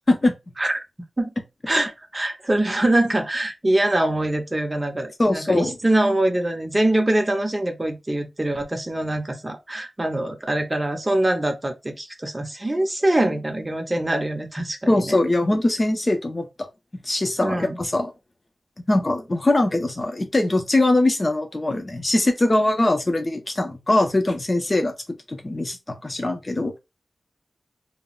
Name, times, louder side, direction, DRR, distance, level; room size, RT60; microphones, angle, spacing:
voice 1, 1.7-15.2 17.4-17.8, right 1 dB, 20° right, 0.6 m, -23 dB
voice 2, 5.2-5.8 14.9-16.5 17.0-18.1 18.9-24.9 25.3-26.8, left 2 dB, 30° left, 0.6 m, -21 dB
2.3 x 2.0 x 3.7 m
wide cardioid pair, 125°, 0 cm